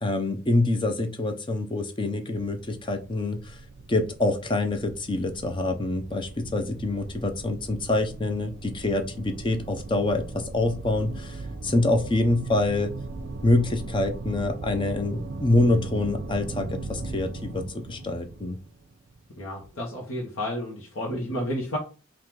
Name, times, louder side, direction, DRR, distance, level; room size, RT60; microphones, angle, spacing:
voice 1, 0.0-3.6 3.9-12.9 13.4-18.6, left 2 dB, 25° left, 6 dB, 0.5 m, -26 dB
sound 1, 2.3-19.3, right 2 dB, 55° right, 0.5 m, -38 dB
voice 2, 19.4-21.8, equal, 75° left, -2 dB, 0.9 m, -31 dB
3.7 x 2.4 x 4.5 m, 0.36 s
head